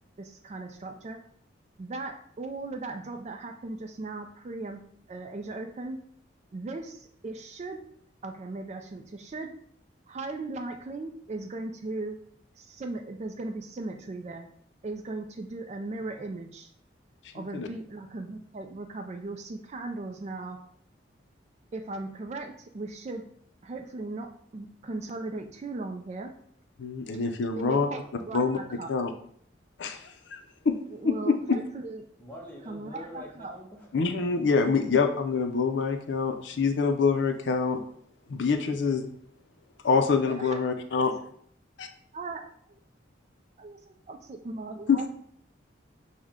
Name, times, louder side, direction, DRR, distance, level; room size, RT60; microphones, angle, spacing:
voice 1, 0.2-1.2 1.8-4.8 5.1-6.0 6.5-7.8 8.2-9.5 10.1-12.2 12.6-14.5 14.8-16.7 17.3-20.6 21.7-23.2 23.6-26.3 27.5-28.9 30.9-32.0 32.7-33.5 40.2-40.6 40.9-41.0 42.1-42.8 43.6-45.1, right 2 dB, 35° right, 6 dB, 0.3 m, -38 dB
voice 2, 26.8-27.9 28.3-28.6 28.9-29.1 29.8-30.4 30.6-30.8 31.0-31.4 33.9-37.8 38.3-39.1 39.8-41.1 41.8-41.9, left 5 dB, 70° left, 7 dB, 0.4 m, -26 dB
voice 3, 32.2-33.9 34.2-34.3, left 1 dB, 10° left, -4 dB, 0.9 m, -44 dB
6.3 x 2.1 x 3.6 m, 0.63 s
head